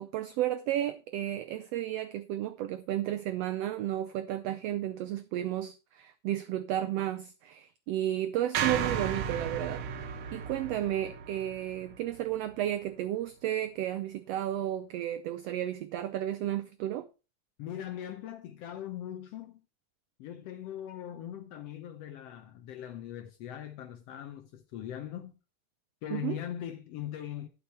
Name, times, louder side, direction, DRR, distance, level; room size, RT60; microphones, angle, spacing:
voice 1, 0.0-17.1 26.1-26.4, right 12 dB, 90° right, 1.4 m, -33 dB
sound 1, 8.5-12.8, right 8 dB, 70° right, 1.4 m, -35 dB
voice 2, 17.6-19.6 20.2-25.4 26.0-27.5, left 11 dB, 75° left, 1.5 m, -40 dB
11.5 x 6.3 x 4.3 m
omnidirectional pair, 3.5 m